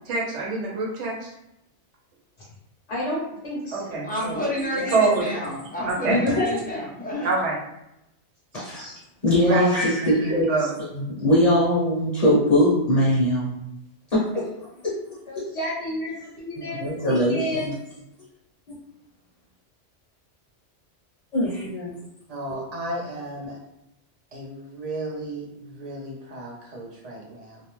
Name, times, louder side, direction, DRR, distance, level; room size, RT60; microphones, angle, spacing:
voice 1, 0.1-1.3 3.7-4.4 4.9-5.3 5.9-6.1 7.2-7.6 9.3-9.6 10.0-10.7, right 3 dB, 85° right, -3 dB, 1.0 m, -25 dB
voice 2, 2.9-4.0 6.1-6.8 15.3-17.7, left 1 dB, 70° left, -7 dB, 0.9 m, -29 dB
voice 3, 4.0-7.3, equal, 10° left, -6 dB, 0.4 m, -30 dB
voice 4, 8.5-8.9 9.2-10.5 11.2-13.5 14.1-14.2 16.8-17.6 21.3-21.9, left 1 dB, 40° left, -8 dB, 0.8 m, -21 dB
voice 5, 9.5-10.1 22.3-23.6 24.3-27.6, right 2 dB, 50° right, -2 dB, 0.5 m, -33 dB
2.4 x 2.1 x 2.9 m, 0.84 s
omnidirectional pair, 1.2 m